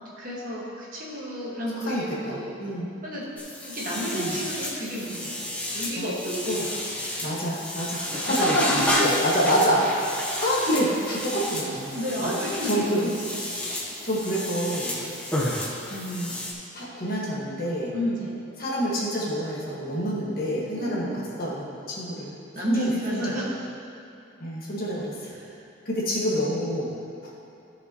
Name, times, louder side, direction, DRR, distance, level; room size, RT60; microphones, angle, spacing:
voice 1, 0.2-2.5 3.0-3.3 3.6-6.7 8.4-8.5 8.8-8.9 11.9-13.4 14.9-15.1 17.9-18.3 20.7-21.2 22.5-23.5 25.4-25.6, equal, 40° right, -6 dB, 1.7 m, -31 dB
voice 2, 1.8-2.9 4.1-4.4 6.0-6.1 6.5-6.6 7.2-8.5 9.0-12.3 12.6-13.1 14.0-15.0 15.9-16.4 16.7-17.9 18.6-22.3 22.6-23.4 24.4-25.3 25.9-26.9 27.2-27.3, equal, 45° left, -6 dB, 1.8 m, -27 dB
sound 1, 3.4-16.5, left 1 dB, 5° left, 1.1 m, -30 dB
14.0 x 6.7 x 3.1 m, 2.7 s
head